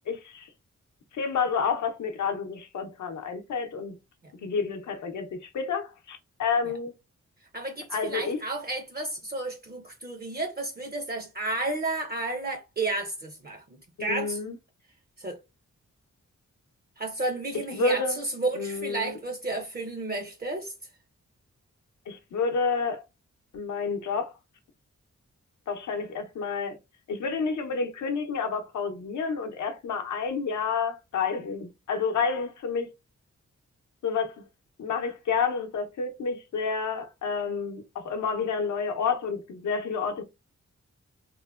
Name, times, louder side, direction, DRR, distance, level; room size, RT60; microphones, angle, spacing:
voice 1, 0.1-0.5 1.1-3.9 4.4-6.9 7.9-8.4 14.0-14.6 17.7-18.2 18.5-19.2 22.1-23.0 23.5-24.3 25.7-26.8 27.1-32.9 34.0-34.4 34.8-40.2, left 5 dB, 75° left, 0.7 m, -29 dB
voice 2, 7.5-14.4 15.2-15.4 17.0-20.7, right 2 dB, 30° right, 0.5 m, -32 dB
3.0 x 2.1 x 2.3 m
cardioid pair, 60°, 30 cm